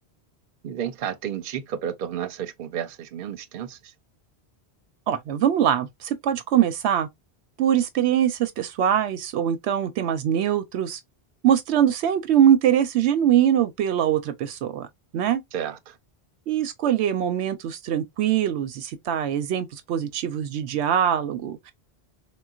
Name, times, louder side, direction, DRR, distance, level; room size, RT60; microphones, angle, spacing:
voice 1, 0.6-3.9 15.5-16.0, right 9 dB, 60° right, 0.7 m, -32 dB
voice 2, 5.1-7.1 7.6-11.0 11.4-14.9 15.1-15.4 16.5-21.7, right 10 dB, 90° right, 0.9 m, -22 dB
3.8 x 2.2 x 2.3 m
omnidirectional pair, 1.1 m